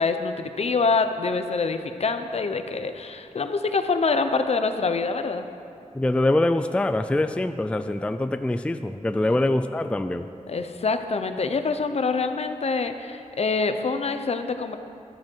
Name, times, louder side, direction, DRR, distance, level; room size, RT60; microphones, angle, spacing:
voice 1, 0.0-5.4 10.5-14.7, left 4 dB, 55° left, 8 dB, 0.7 m, -25 dB
voice 2, 5.9-10.3, left 1 dB, 10° left, 9 dB, 0.3 m, -24 dB
12.5 x 12.5 x 4.6 m, 2.6 s
wide cardioid pair, 130°, 13 cm